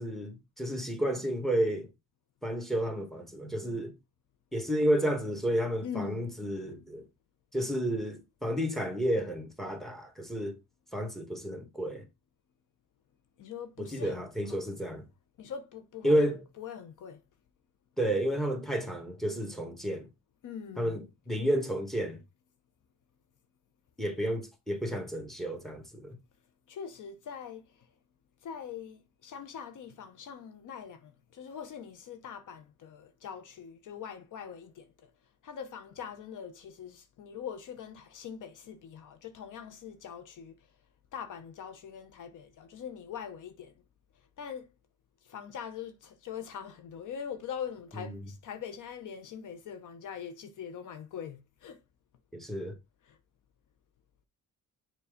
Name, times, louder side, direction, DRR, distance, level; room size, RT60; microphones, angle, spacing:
voice 1, 0.0-1.9 2.4-3.9 4.5-7.0 7.5-10.6 10.9-12.0 13.8-15.0 16.0-16.4 18.0-20.1 20.8-22.2 24.0-26.2 47.9-48.3 52.3-52.7, equal, ahead, 1.6 m, -31 dB
voice 2, 5.8-6.3 13.4-14.2 14.5-14.6 15.4-17.2 20.4-21.0 26.7-27.7 28.4-35.1 35.4-40.5 41.1-43.7 44.4-44.7 45.3-51.8 53.1-53.2, left 7 dB, 60° left, 0.9 m, -42 dB
7.0 x 3.0 x 5.1 m
cardioid pair, 95°, 34 cm